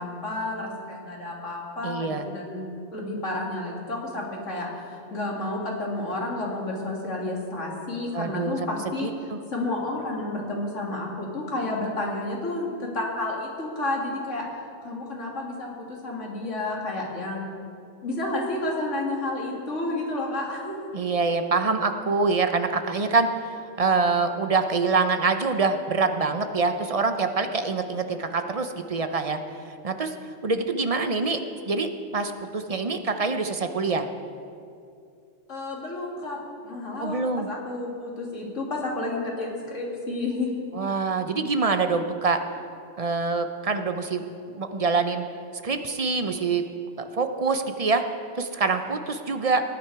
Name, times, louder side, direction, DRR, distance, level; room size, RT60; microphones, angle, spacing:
voice 1, 0.0-9.1 9.5-14.4 14.8-17.4 18.0-20.8 35.5-36.4 36.6-37.2 37.5-40.5, left 2 dB, 80° left, -2 dB, 2.8 m, -31 dB
voice 2, 1.8-2.2 8.1-8.7 9.0-9.4 20.9-29.4 29.8-30.1 30.4-31.4 31.7-34.1 37.0-37.5 40.7-42.4 43.0-45.2 45.6-46.6 47.0-48.0 48.4-49.6, right 4 dB, 40° right, 7 dB, 0.6 m, -25 dB
19.0 x 9.8 x 4.7 m, 2.5 s
omnidirectional pair, 1.3 m